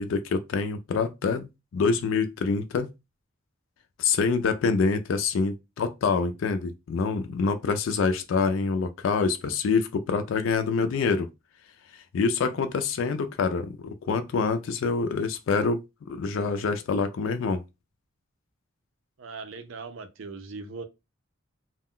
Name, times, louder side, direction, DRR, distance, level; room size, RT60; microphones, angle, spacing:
voice 1, 0.0-2.9 4.0-11.3 12.1-17.6, left 4 dB, 70° left, 0.3 m, -26 dB
voice 2, 19.2-20.8, right 4 dB, 70° right, 0.5 m, -39 dB
2.3 x 2.1 x 3.6 m
head